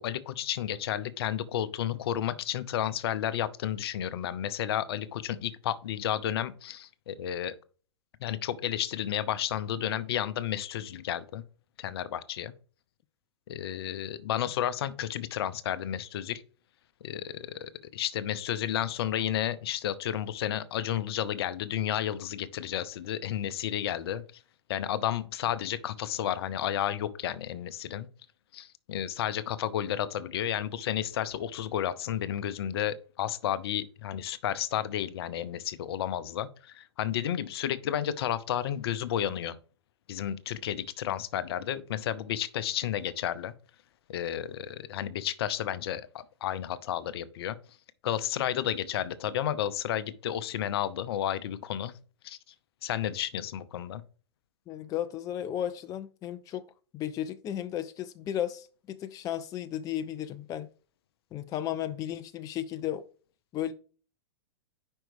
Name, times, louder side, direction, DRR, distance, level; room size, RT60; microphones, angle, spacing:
voice 1, 0.0-7.5 8.2-11.4 11.8-12.5 13.5-16.4 17.0-24.2 24.7-28.1 28.5-39.6 40.1-43.5 44.1-47.6 48.0-51.9 52.2-52.4 52.8-54.0, left 11 dB, 65° left, 0.7 m, -32 dB
voice 2, 54.7-56.6 56.9-60.7 61.3-63.0 63.5-63.7, left 11 dB, 25° left, 0.4 m, -34 dB
5.4 x 4.4 x 4.8 m
hypercardioid pair, 115°, 14 cm